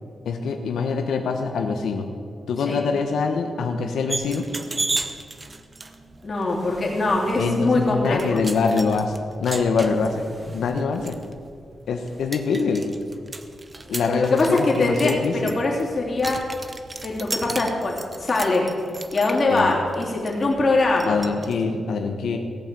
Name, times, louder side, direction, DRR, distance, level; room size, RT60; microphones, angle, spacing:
voice 1, 0.2-2.1 2.5-4.5 7.4-10.2 10.5-11.2 11.9-12.8 13.9-15.6 19.5-19.8 21.0-22.4, left 5 dB, 90° left, 4 dB, 1.1 m, -24 dB
sound 1, 4.1-21.5, right 2 dB, 20° right, 0.8 m, -35 dB
voice 2, 6.2-8.3 13.9-16.4 17.0-18.7 19.1-21.2, left 2 dB, 30° left, -2 dB, 3.2 m, -22 dB
17.5 x 8.9 x 7.7 m, 2.3 s
wide cardioid pair, 155°, 0 cm